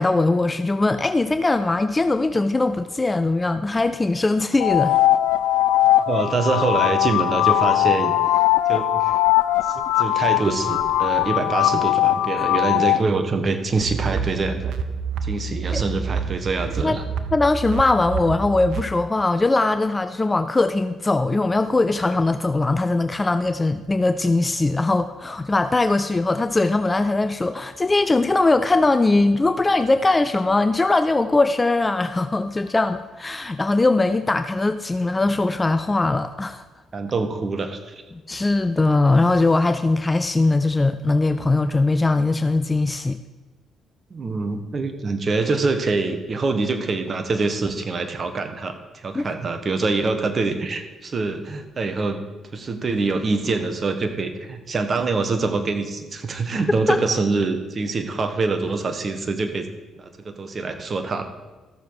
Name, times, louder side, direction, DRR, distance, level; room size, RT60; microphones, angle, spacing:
voice 1, 0.0-5.0 15.7-15.8 16.8-17.0 17.3-36.6 38.3-43.2 49.1-49.3 56.9-57.0, left 2 dB, 25° left, 10 dB, 0.5 m, -20 dB
sound 1, 4.6-13.0, left 14 dB, 85° left, 0.3 m, -20 dB
voice 2, 6.1-9.1 9.6-14.8 15.2-17.0 36.9-38.0 44.1-52.2 52.5-59.7 60.0-61.2, right 3 dB, 45° right, 8 dB, 1.3 m, -25 dB
sound 2, 13.8-18.8, right 5 dB, 70° right, 0.7 m, -28 dB
14.0 x 7.0 x 4.7 m, 1.2 s
supercardioid pair, 55°, 0 cm